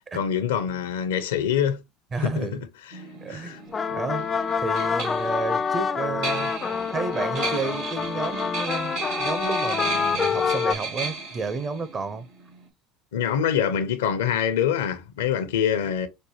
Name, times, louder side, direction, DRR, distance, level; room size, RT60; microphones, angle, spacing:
voice 1, 0.1-1.8 2.1-2.7 2.9-3.0 3.3-3.6 13.1-16.1, left 8 dB, 85° left, 0.6 m, -25 dB
voice 2, 2.1-2.6 3.2-3.6 3.9-4.3 4.6-6.5 6.9-12.3, right 4 dB, 35° right, 0.8 m, -31 dB
sound 1, 2.9-12.7, right 4 dB, 70° right, 1.5 m, -34 dB
sound 2, 3.6-10.7, left 6 dB, 30° left, 0.4 m, -27 dB
5.2 x 2.2 x 3.1 m
hypercardioid pair, 80°, 0 cm